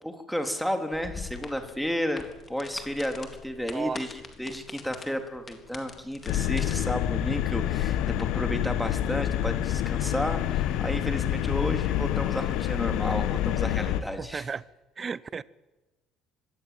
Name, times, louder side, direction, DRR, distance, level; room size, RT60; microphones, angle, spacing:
voice 1, 0.0-8.0 8.3-14.5, equal, ahead, 5 dB, 3.7 m, -32 dB
sound 1, 0.9-6.7, left 5 dB, 35° left, 4.0 m, -44 dB
voice 2, 3.7-4.0 14.2-14.6 15.0-15.4, right 5 dB, 35° right, 20 dB, 0.9 m, -33 dB
sound 2, 6.3-14.0, left 11 dB, 65° left, 1.4 m, -27 dB
24.5 x 18.0 x 7.8 m, 1.1 s
hypercardioid pair, 55°, 0 cm